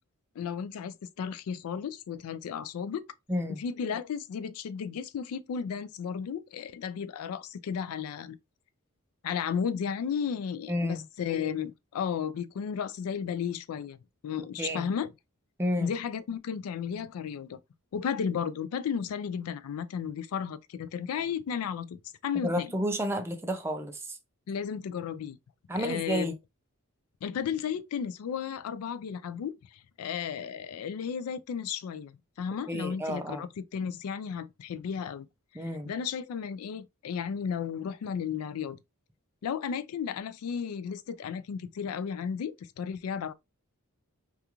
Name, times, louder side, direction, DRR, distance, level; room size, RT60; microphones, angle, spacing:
voice 1, 0.4-3.0 3.6-8.4 9.2-14.0 14.2-15.1 15.8-17.6 17.9-22.7 24.5-25.4 25.8-26.3 27.2-35.3 35.5-38.8 39.4-43.3, left 7 dB, 70° left, 0.3 m, -34 dB
voice 2, 3.3-3.6 10.7-11.0 14.6-14.9 15.6-15.9 22.4-24.2 25.7-26.4 32.7-33.4 35.5-35.9, equal, 10° right, 0.4 m, -31 dB
2.4 x 2.3 x 2.8 m
head